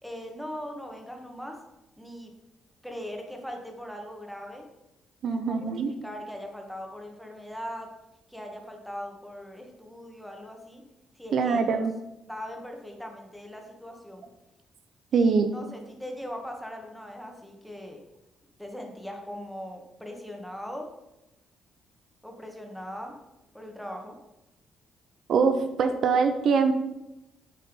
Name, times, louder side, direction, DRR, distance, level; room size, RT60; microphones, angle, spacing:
voice 1, 0.0-1.6 2.0-2.3 2.8-4.6 5.2-7.9 8.3-10.8 11.2-11.8 12.3-14.2 15.1-18.0 18.6-20.9 22.2-23.1 23.5-24.2, equal, ahead, 2 dB, 1.9 m, -40 dB
voice 2, 5.2-5.9 11.3-11.9 15.1-15.5 25.3-26.7, right 5 dB, 65° right, 8 dB, 0.8 m, -23 dB
10.5 x 4.3 x 5.4 m, 0.94 s
cardioid pair, 90°, 0 cm